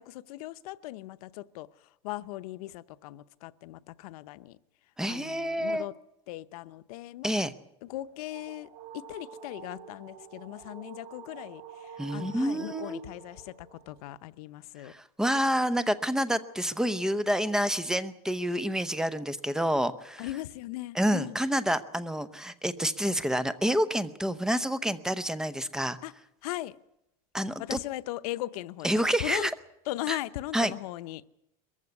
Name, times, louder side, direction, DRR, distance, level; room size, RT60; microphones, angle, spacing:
voice 1, 0.0-1.7 2.0-4.6 5.1-5.9 6.3-7.3 7.8-8.7 8.9-14.9 20.2-21.4 26.0-26.1 26.4-26.8 27.6-29.5 29.9-31.2, left 16 dB, 90° left, 13 dB, 0.8 m, -38 dB
voice 2, 5.0-5.9 7.2-7.5 12.0-13.0 14.8-20.3 20.9-26.0 27.3-27.8 28.8-29.5 30.1-30.2 30.5-30.7, equal, 5° right, 13 dB, 0.7 m, -28 dB
sound 1, 7.9-14.0, right 7 dB, 55° right, 4.8 m, -48 dB
22.0 x 15.0 x 9.6 m, 0.84 s
cardioid pair, 155°, 19 cm